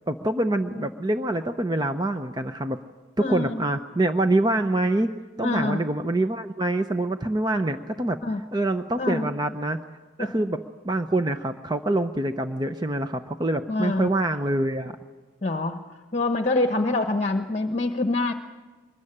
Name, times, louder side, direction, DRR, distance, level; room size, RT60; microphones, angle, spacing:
voice 1, 0.1-2.8 3.2-5.1 5.4-8.2 8.5-9.8 10.2-15.0, right 1 dB, 20° right, 7 dB, 0.7 m, -25 dB
voice 2, 3.2-3.7 5.4-5.8 8.2-8.4 9.0-9.3 10.2-10.3 13.7-14.1 15.4-15.8 16.1-18.3, left 2 dB, 35° left, 6 dB, 1.0 m, -25 dB
24.0 x 21.0 x 10.0 m, 1.4 s
head